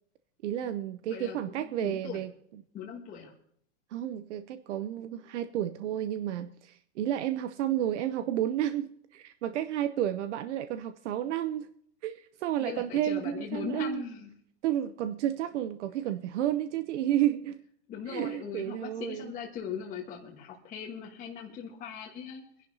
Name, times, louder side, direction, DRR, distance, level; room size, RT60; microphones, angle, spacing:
voice 1, 0.4-2.3 3.9-11.7 12.0-14.0 14.6-17.6 18.1-19.3, right 11 dB, 75° right, 0.7 m, -31 dB
voice 2, 1.1-2.2 2.7-3.3 12.6-14.3 17.9-22.6, left 7 dB, 20° left, 1.4 m, -39 dB
24.5 x 11.0 x 2.8 m
supercardioid pair, 160°, 36 cm